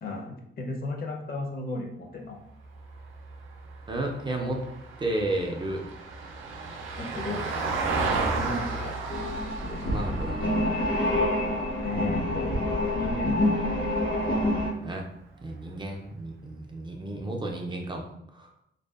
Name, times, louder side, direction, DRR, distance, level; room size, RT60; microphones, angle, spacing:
voice 1, 0.0-2.4 7.0-7.4 8.3-9.0 11.8-12.6 12.9-13.4, left 2 dB, 50° left, 2 dB, 0.6 m, -34 dB
Vehicle, 2.6-13.1 15.4-15.5, right 3 dB, 90° right, 0.4 m, -34 dB
voice 2, 3.9-4.6 5.0-5.8 9.8-10.6 14.8-15.1 15.4-18.1 18.3-18.5, right 2 dB, 25° right, 1 dB, 0.4 m, -32 dB
sound 1, 9.1-14.7, left 1 dB, 75° left, 1.1 m, -27 dB
2.6 x 2.3 x 2.3 m, 0.77 s
cardioid pair, 100°, 20 cm